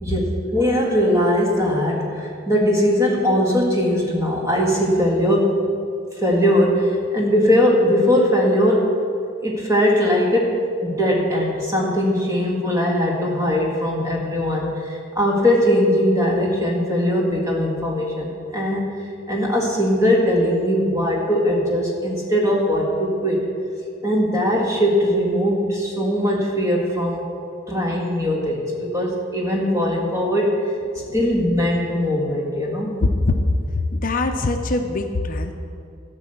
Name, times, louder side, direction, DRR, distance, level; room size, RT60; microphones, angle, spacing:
voice 1, 0.0-5.6 6.2-9.0 9.4-19.0 19.3-23.5 24.0-27.3 27.7-30.7 31.1-33.0, equal, 15° right, -2 dB, 1.8 m, -20 dB
voice 2, 33.7-35.5, left 2 dB, 45° left, 5 dB, 0.6 m, -23 dB
13.0 x 5.3 x 7.8 m, 2.5 s
head